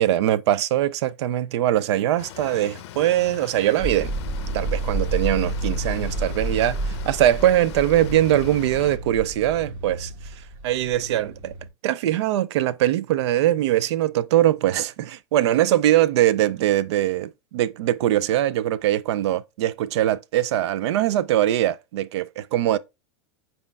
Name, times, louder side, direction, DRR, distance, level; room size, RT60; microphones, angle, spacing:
voice 1, 0.0-4.1 4.5-10.1 10.6-11.5 11.8-22.8, right 13 dB, 70° right, 0.4 m, -22 dB
sound 1, 2.2-9.0, left 12 dB, 70° left, 0.5 m, -41 dB
sound 2, 3.8-11.7, right 2 dB, 55° right, 2.4 m, -30 dB
5.3 x 4.3 x 2.3 m
supercardioid pair, 135°, 15 cm